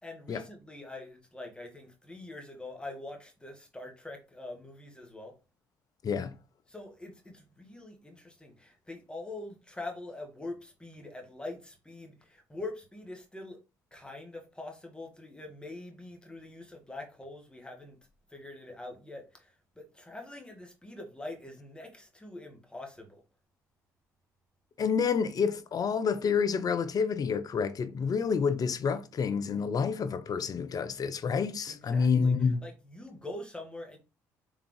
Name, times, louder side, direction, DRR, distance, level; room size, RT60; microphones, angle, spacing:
voice 1, 0.0-5.4 6.7-13.6 13.9-18.0 18.3-23.2 31.7-34.0, left 2 dB, 10° left, 1.8 m, -44 dB
voice 2, 6.0-6.4 24.8-32.6, left 6 dB, 45° left, 0.6 m, -28 dB
3.6 x 3.5 x 3.2 m
hypercardioid pair, 55°, 9 cm